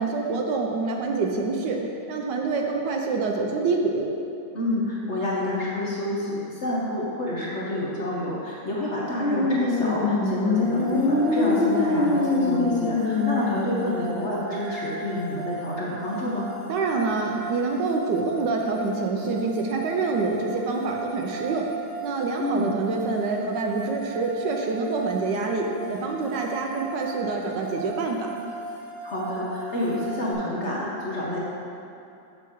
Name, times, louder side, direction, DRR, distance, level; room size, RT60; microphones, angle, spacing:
voice 1, 0.0-1.8 2.1-4.1 16.7-21.7 22.0-28.3, right 4 dB, 70° right, 1 dB, 1.2 m, -26 dB
voice 2, 4.5-16.5 22.4-22.8 29.0-31.4, left 1 dB, 45° left, -6 dB, 1.0 m, -28 dB
sound 1, 9.2-14.0, left 3 dB, 70° left, 1.6 m, -23 dB
sound 2, 10.5-30.3, right 2 dB, 10° right, 1.4 m, -37 dB
7.0 x 6.0 x 4.5 m, 2.6 s
omnidirectional pair, 2.1 m